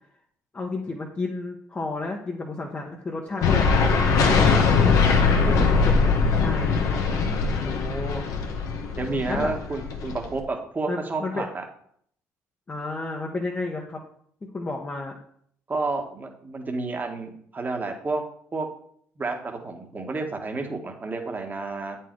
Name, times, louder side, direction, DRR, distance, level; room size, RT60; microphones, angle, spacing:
voice 1, 0.5-3.9 4.4-6.1 6.4-6.7 7.6-8.2 9.3-9.5 10.9-11.5 12.7-14.0 14.5-15.2, left 2 dB, 30° left, -1 dB, 1.2 m, -32 dB
sound 1, 3.4-10.4, left 5 dB, 75° left, 1.2 m, -21 dB
voice 2, 6.9-7.4 9.0-11.6 15.7-18.2 18.5-18.7 19.2-22.0, right 3 dB, 30° right, 3 dB, 1.5 m, -30 dB
8.1 x 4.7 x 4.7 m, 0.65 s
supercardioid pair, 80°, 6 cm